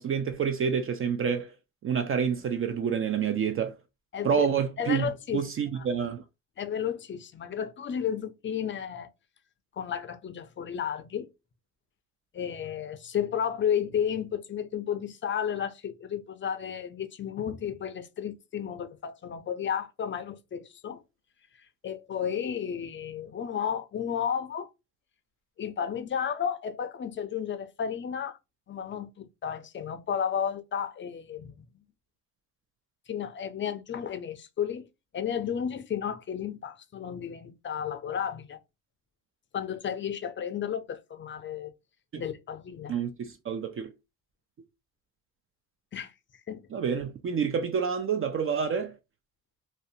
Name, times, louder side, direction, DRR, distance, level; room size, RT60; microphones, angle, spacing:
voice 1, 0.0-1.6 1.8-3.8 4.2-5.0 5.3-6.2 42.1-42.2 42.9-43.9 46.7-49.0, right 7 dB, 40° right, 0.4 m, -28 dB
voice 2, 4.8-5.8 6.6-9.1 9.7-11.3 12.3-21.0 21.6-24.7 25.6-28.4 28.7-31.7 33.1-34.9 35.1-38.6 39.5-41.7 42.2-42.9 45.9-46.1 46.5-46.7, left 8 dB, 35° left, 0.4 m, -33 dB
2.6 x 2.1 x 2.6 m
cardioid pair, 85°, 36 cm